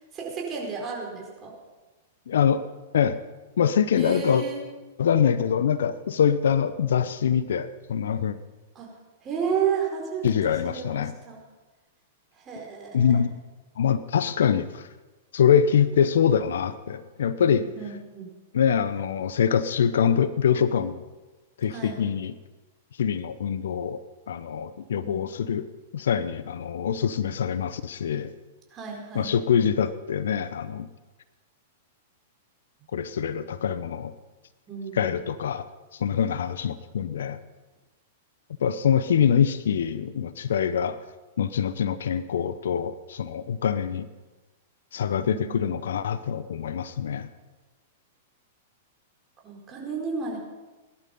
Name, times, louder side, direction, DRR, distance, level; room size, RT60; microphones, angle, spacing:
voice 1, 0.0-1.5 3.9-4.6 8.7-8.9 9.2-11.4 12.4-13.1 17.5-18.3 21.7-22.0 25.0-25.2 28.7-29.3 34.7-35.2 45.3-45.8 49.4-50.4, right 6 dB, 25° right, -1 dB, 4.6 m, -32 dB
voice 2, 2.3-2.6 2.9-3.2 3.6-4.4 5.0-8.4 10.2-11.1 12.9-13.3 13.8-14.9 15.3-17.6 18.5-21.0 21.6-22.4 23.0-24.0 24.3-25.7 25.9-28.3 29.1-30.9 32.9-34.1 34.9-35.7 35.9-37.4 38.6-41.0 41.4-44.1 44.9-47.3, left 8 dB, 70° left, 14 dB, 0.7 m, -24 dB
18.5 x 11.5 x 5.4 m, 1.2 s
figure-of-eight pair, 105°, 0 cm